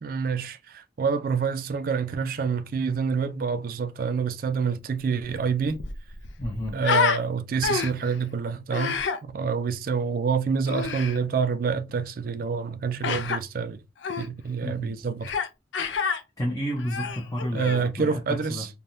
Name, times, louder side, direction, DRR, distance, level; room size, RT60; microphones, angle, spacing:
voice 1, 0.0-5.8 6.7-9.0 9.3-13.8 14.2-15.3 17.5-18.7, right 5 dB, 50° right, 0.3 m, -27 dB
Human voice, 5.2-5.3 5.6-7.2 7.6-8.1 8.7-9.2 10.7-11.2 13.0-13.4 14.0-14.3 15.2-15.5 15.7-16.2 16.8-17.9, left 6 dB, 80° left, 0.4 m, -28 dB
voice 2, 6.4-6.8 14.6-15.0 16.4-18.7, equal, 20° left, 0.6 m, -31 dB
3.3 x 2.2 x 2.6 m
head